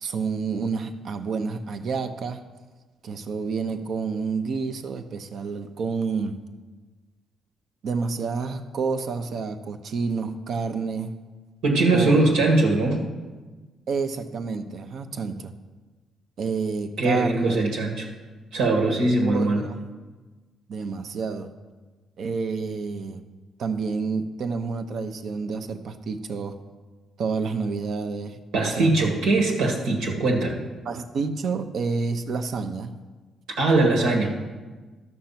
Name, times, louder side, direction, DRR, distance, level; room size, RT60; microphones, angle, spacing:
voice 1, 0.0-2.4 3.0-6.4 7.8-11.1 11.9-12.2 13.9-15.5 16.4-17.6 19.2-19.8 20.7-21.5 22.2-23.2 23.6-26.6 27.2-29.1 30.8-32.9, right 4 dB, 60° right, 8 dB, 0.8 m, -29 dB
voice 2, 11.6-13.0 17.0-18.1 18.5-19.6 28.5-30.6 33.6-34.4, right 2 dB, 90° right, 1 dB, 2.0 m, -21 dB
12.5 x 6.6 x 5.9 m, 1.3 s
cardioid pair, 90°, 0 cm